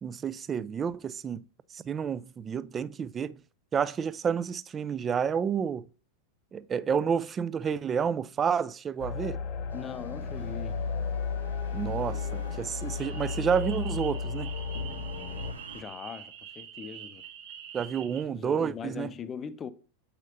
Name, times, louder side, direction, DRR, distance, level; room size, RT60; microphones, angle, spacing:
voice 1, 0.0-1.4 1.7-3.4 3.7-5.8 6.5-9.4 11.7-14.5 17.7-19.1, right 7 dB, 20° right, 0.3 m, -30 dB
sound 1, 9.0-15.5, left 5 dB, 40° left, 0.9 m, -34 dB
voice 2, 9.7-10.8 15.7-17.3 18.1-19.7, left 7 dB, 25° left, 0.6 m, -41 dB
sound 2, 9.7-15.8, equal, 80° right, 0.9 m, -48 dB
sound 3, 13.0-18.2, right 9 dB, 50° right, 1.4 m, -45 dB
8.0 x 5.7 x 2.7 m
figure-of-eight pair, 90°, 0 cm